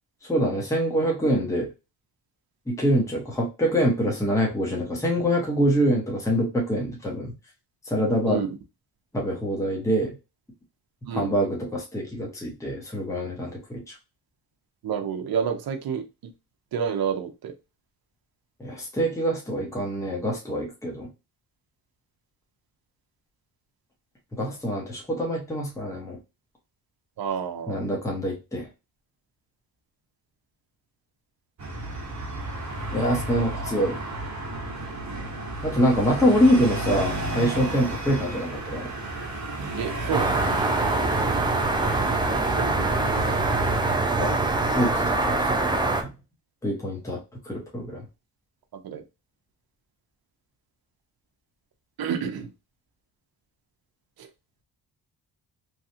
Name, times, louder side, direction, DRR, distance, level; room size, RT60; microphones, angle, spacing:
voice 1, 0.3-1.7 2.7-7.3 7.9-8.4 9.1-10.1 11.1-13.8 18.6-21.1 24.3-26.2 27.7-28.7 32.9-34.0 35.6-38.9 44.2-44.3 44.7-45.6 46.6-47.2 47.5-48.0, equal, 5° left, -2 dB, 1.0 m, -25 dB
voice 2, 8.2-8.6 11.1-11.3 14.8-16.0 16.7-17.5 27.2-27.8 39.8-40.4 42.6-42.9 48.8-49.0 52.0-52.5 54.2-54.3, right 7 dB, 60° right, 7 dB, 0.7 m, -29 dB
sound 1, 31.6-43.9, right 2 dB, 45° right, 1.1 m, -32 dB
sound 2, 40.1-46.0, right 2 dB, 10° right, 0.4 m, -24 dB
3.2 x 2.3 x 2.7 m, 0.27 s
cardioid pair, 105°, 41 cm